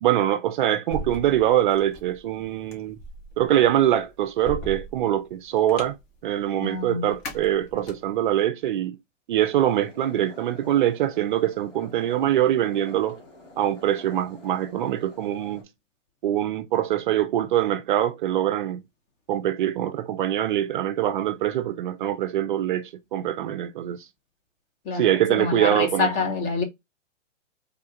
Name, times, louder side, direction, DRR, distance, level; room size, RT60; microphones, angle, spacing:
voice 1, 0.0-3.0 3.4-6.0 6.2-9.0 9.3-13.2 13.6-15.7 16.2-18.8 19.3-24.1 24.9-26.1, right 12 dB, 45° right, 0.4 m, -23 dB
sound 1, 0.9-8.3, right 1 dB, 50° left, 1.3 m, -39 dB
voice 2, 6.6-7.1 24.8-26.6, left 4 dB, 20° left, 0.5 m, -27 dB
sound 2, 9.4-15.6, left 2 dB, 70° left, 1.7 m, -48 dB
3.5 x 2.2 x 2.7 m
hypercardioid pair, 125°, 38 cm